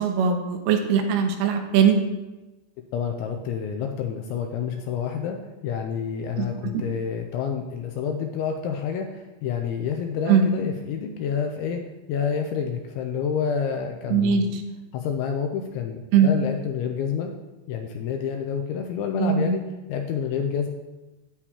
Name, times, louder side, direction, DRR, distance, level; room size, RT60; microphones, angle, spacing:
voice 1, 0.0-2.0 6.4-6.5 6.7-6.8 10.3-10.5 14.1-14.4 16.1-16.3 19.2-19.6, right 7 dB, 85° right, 4 dB, 3.3 m, -20 dB
voice 2, 2.9-5.4 5.6-11.8 12.1-14.5 14.9-17.3 17.7-19.6 19.9-20.7, left 7 dB, 80° left, 4 dB, 2.7 m, -28 dB
9.7 x 9.1 x 2.9 m, 1.1 s
omnidirectional pair, 5.8 m